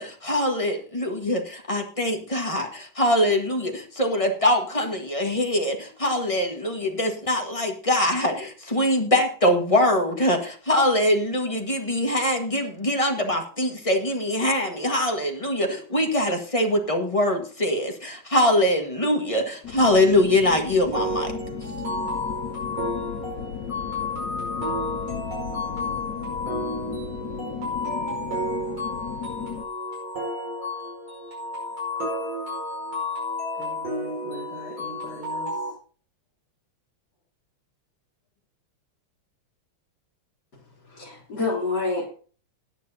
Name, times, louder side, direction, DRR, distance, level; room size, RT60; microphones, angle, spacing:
voice 1, 0.0-21.3, left 1 dB, 15° left, 1.5 m, -23 dB
sound 1, 19.6-29.6, left 9 dB, 70° left, 1.0 m, -36 dB
sound 2, 20.9-35.7, left 1 dB, 75° right, 5.8 m, -31 dB
voice 2, 33.5-35.7, left 3 dB, 85° left, 2.7 m, -43 dB
voice 3, 40.9-42.1, left 3 dB, 50° left, 3.7 m, -27 dB
18.0 x 9.6 x 2.8 m
omnidirectional pair, 2.3 m